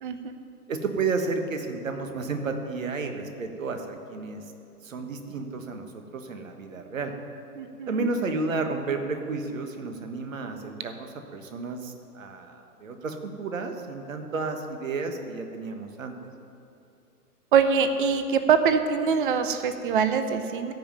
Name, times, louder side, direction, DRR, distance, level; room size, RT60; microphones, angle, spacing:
voice 1, 0.0-0.4 7.6-8.0 17.5-20.7, right 6 dB, 35° right, 9 dB, 0.7 m, -23 dB
voice 2, 0.7-4.5 4.8-7.1 7.9-16.1, right 4 dB, 55° right, 6 dB, 1.6 m, -32 dB
15.0 x 5.4 x 8.8 m, 2.8 s
figure-of-eight pair, 130°, 47 cm